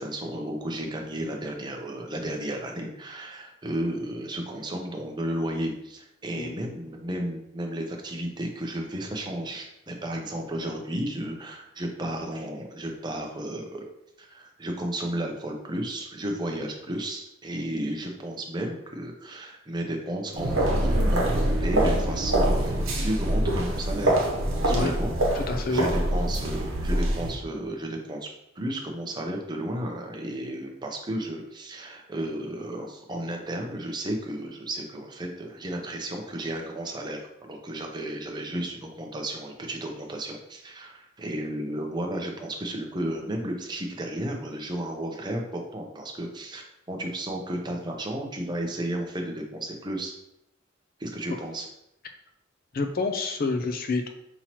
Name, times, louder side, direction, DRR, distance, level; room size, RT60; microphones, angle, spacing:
voice 1, 0.0-13.9 14.2-24.3 24.6-25.1 25.4-28.3 28.6-50.1 51.0-51.7, right 1 dB, 20° right, 2 dB, 0.6 m, -33 dB
sound 1, 20.3-27.4, right 1 dB, 80° right, 0.9 m, -24 dB
voice 2, 25.3-25.9 52.7-54.1, left 3 dB, 45° left, 5 dB, 0.4 m, -28 dB
5.5 x 2.9 x 3.0 m, 0.81 s
head